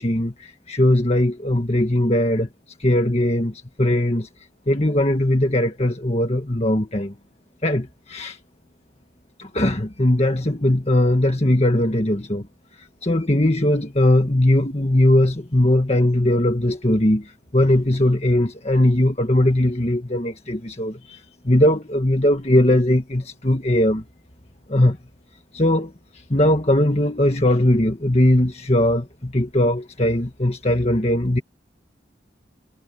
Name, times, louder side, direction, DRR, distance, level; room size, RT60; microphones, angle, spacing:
voice 1, 0.0-2.5 2.8-3.5 3.8-4.3 4.7-7.1 7.6-8.4 9.4-12.5 13.0-17.2 17.5-21.2 21.4-24.0 24.7-25.0 25.5-25.9 26.3-31.4, left 1 dB, 35° left, 1.8 m, -19 dB
head